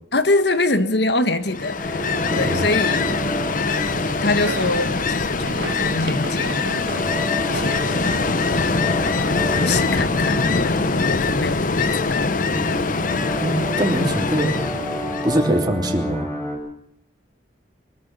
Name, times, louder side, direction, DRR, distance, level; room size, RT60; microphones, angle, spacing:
voice 1, 0.1-3.1 4.2-7.0 7.5-8.0 9.6-12.4, left 2 dB, 65° left, 10 dB, 1.6 m, -24 dB
Ocean, 1.5-15.5, left 3 dB, 50° left, 1.0 m, -23 dB
sound 1, 1.8-16.6, left 1 dB, 20° left, 6.6 m, -32 dB
voice 2, 2.3-2.7 13.4-14.6 15.2-16.3, right 1 dB, 25° right, 2 dB, 3.0 m, -22 dB
sound 2, 2.5-9.6, right 3 dB, 75° right, 2.1 m, -35 dB
23.0 x 13.5 x 8.9 m, 0.73 s
head